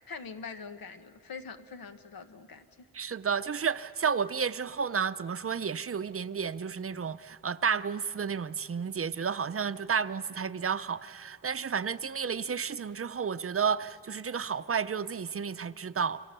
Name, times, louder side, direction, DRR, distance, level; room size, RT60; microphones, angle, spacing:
voice 1, 0.1-2.9, left 5 dB, 85° left, 8 dB, 1.4 m, -44 dB
voice 2, 2.9-16.2, right 6 dB, 40° right, 13 dB, 0.6 m, -31 dB
29.5 x 23.5 x 6.8 m, 2.6 s
wide cardioid pair, 110°, 35 cm